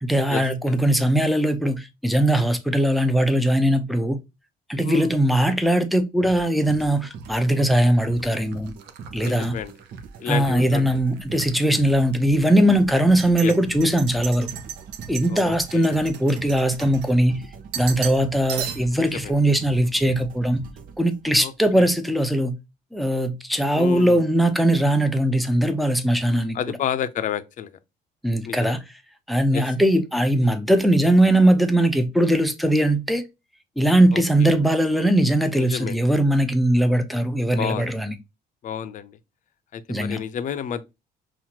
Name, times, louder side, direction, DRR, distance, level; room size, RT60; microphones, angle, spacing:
voice 1, 0.0-4.2 4.7-8.7 9.1-9.5 10.3-14.5 15.1-17.4 17.8-20.6 21.0-22.5 22.9-26.6 28.2-28.8 29.3-33.2 33.8-38.1 39.9-40.2, right 1 dB, ahead, 0.7 m, -20 dB
sound 1, 6.2-21.5, right 5 dB, 55° right, 0.8 m, -41 dB
sound 2, 6.7-10.6 10.9-11.6 12.1-12.2 13.0-17.4 17.7-18.2 18.5-19.1, right 9 dB, 85° right, 0.6 m, -37 dB
voice 2, 9.2-9.7 10.2-10.9 13.4-13.5 13.8-13.9 15.3-15.9 19.0-19.3 21.4-21.9 23.7-24.2 26.5-27.7 28.5-28.8 29.5-29.6 34.1-34.2 35.6-36.0 37.5-37.9 38.6-39.2 39.7-40.9, left 8 dB, 50° left, 0.5 m, -30 dB
5.6 x 2.5 x 2.9 m
cardioid pair, 110°, 17 cm